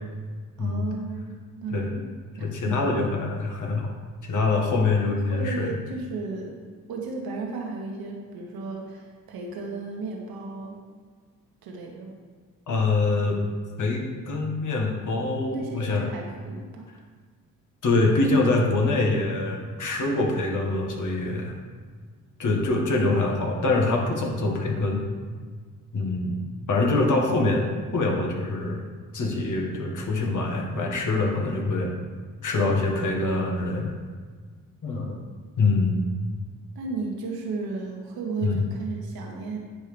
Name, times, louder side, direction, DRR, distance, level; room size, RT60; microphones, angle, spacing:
voice 1, 0.6-2.0 2.4-3.1 5.0-6.5 6.9-10.8 11.6-12.2 15.5-16.9 36.8-39.6, right 3 dB, 65° right, 0 dB, 1.7 m, -34 dB
voice 2, 2.4-3.9 4.2-5.7 12.7-13.4 13.8-16.1 17.8-21.6 22.4-25.1 25.9-26.4 26.7-28.8 29.1-31.9 32.4-33.9 34.8-35.1 35.6-36.0 38.4-38.6, left 3 dB, 50° left, 0 dB, 1.9 m, -24 dB
9.7 x 5.4 x 3.5 m, 1.6 s
hypercardioid pair, 45°, 38 cm